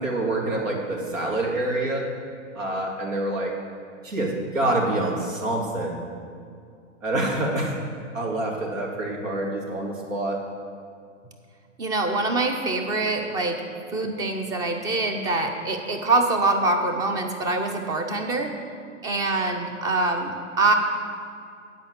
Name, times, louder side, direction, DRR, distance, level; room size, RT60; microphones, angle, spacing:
voice 1, 0.0-2.0 2.5-3.5 4.0-6.0 7.0-7.8 8.1-10.4, right 2 dB, 80° right, -1 dB, 2.4 m, -26 dB
voice 2, 11.8-13.6 13.9-18.5 19.0-20.7, right 2 dB, 10° right, 4 dB, 0.5 m, -24 dB
9.1 x 5.2 x 7.8 m, 2.3 s
hypercardioid pair, 130°, 38 cm